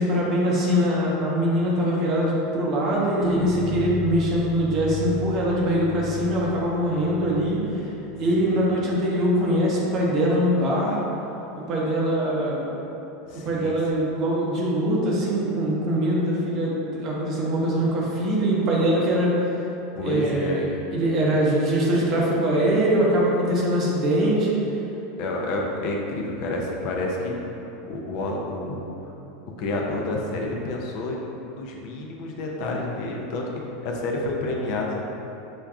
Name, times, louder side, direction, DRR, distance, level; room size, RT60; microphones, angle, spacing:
voice 1, 0.0-7.9 8.2-11.0 11.6-12.7 13.3-19.3 20.0-24.6, equal, 45° right, -4 dB, 0.8 m, -23 dB
sound 1, 3.2-8.8, left 3 dB, 5° right, 0.8 m, -36 dB
voice 2, 13.3-14.1 20.0-20.6 25.2-27.3 27.6-29.1 29.6-31.2 31.4-33.4 33.8-35.1, left 2 dB, 60° left, -1 dB, 0.5 m, -29 dB
5.1 x 2.2 x 2.4 m, 3.0 s
hypercardioid pair, 90°, 0 cm